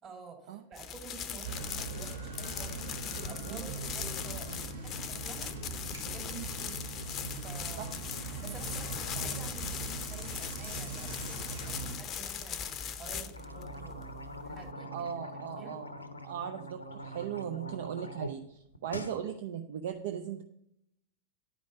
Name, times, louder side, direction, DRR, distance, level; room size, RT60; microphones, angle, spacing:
voice 1, 0.0-5.5 6.0-6.8 7.4-8.1 8.4-14.1 14.4-15.8, right 6 dB, 30° right, 0 dB, 2.8 m, -49 dB
sound 1, 0.7-14.7, left 8 dB, 30° left, 0.6 m, -40 dB
sound 2, 1.4-12.0, right 4 dB, 70° right, 1.3 m, -41 dB
sound 3, 13.3-18.3 18.6-19.2, equal, 80° left, 0.7 m, -43 dB
voice 2, 14.9-15.9 16.2-20.4, right 9 dB, 55° right, 6 dB, 0.5 m, -38 dB
10.0 x 5.2 x 5.7 m, 0.78 s
figure-of-eight pair, 90°, 0 cm